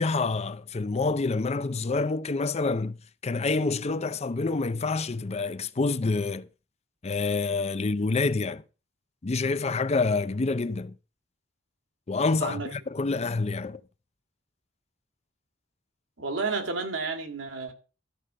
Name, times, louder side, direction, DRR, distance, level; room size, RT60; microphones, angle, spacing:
voice 1, 0.0-3.0 3.2-6.5 7.0-8.6 9.2-10.9 12.1-13.8, left 3 dB, 35° left, 0.5 m, -27 dB
voice 2, 16.2-17.7, right 4 dB, 75° right, 2.2 m, -31 dB
13.5 x 5.1 x 7.4 m
head